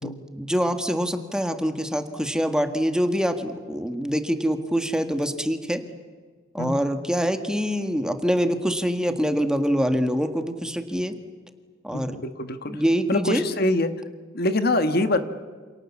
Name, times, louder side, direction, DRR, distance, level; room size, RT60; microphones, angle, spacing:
voice 1, 0.4-5.8 6.5-11.1 11.8-12.2 12.7-13.4, equal, 5° right, 7 dB, 1.7 m, -25 dB
voice 2, 11.9-12.8 13.1-13.9 14.3-15.2, left 1 dB, 55° left, 9 dB, 1.5 m, -24 dB
28.5 x 28.0 x 7.3 m, 1.5 s
head